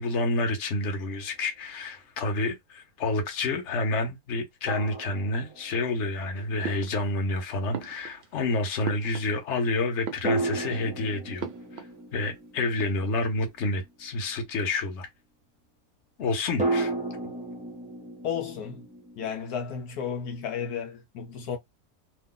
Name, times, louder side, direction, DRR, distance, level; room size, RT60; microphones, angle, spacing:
voice 1, 0.0-11.5 11.7-11.9 12.1-15.1 16.2-16.9, left 2 dB, 50° left, 1.1 m, -29 dB
sound 1, 1.0-1.2 4.7-6.2 10.2-13.9 16.6-19.3, right 2 dB, 10° right, 0.5 m, -33 dB
sound 2, 6.6-7.4 7.7-9.6 9.9-10.8 11.4-12.0 12.3-12.4 12.6-13.4, right 7 dB, 60° right, 0.7 m, -39 dB
voice 2, 18.2-18.9 19.2-21.6, left 7 dB, 75° left, 1.1 m, -33 dB
2.9 x 2.2 x 3.7 m
omnidirectional pair, 1.7 m